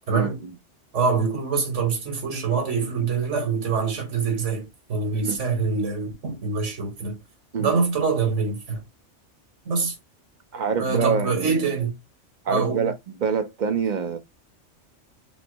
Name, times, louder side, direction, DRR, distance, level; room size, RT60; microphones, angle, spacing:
voice 1, 0.1-0.5 5.1-5.4 7.5-7.7 10.5-11.8 12.4-14.2, right 6 dB, 45° right, 0.9 m, -26 dB
voice 2, 0.9-7.2 7.6-8.8 9.7-10.0 10.8-11.9 12.5-12.9, right 4 dB, 80° right, 1.9 m, -25 dB
5.4 x 2.1 x 4.5 m
omnidirectional pair, 1.2 m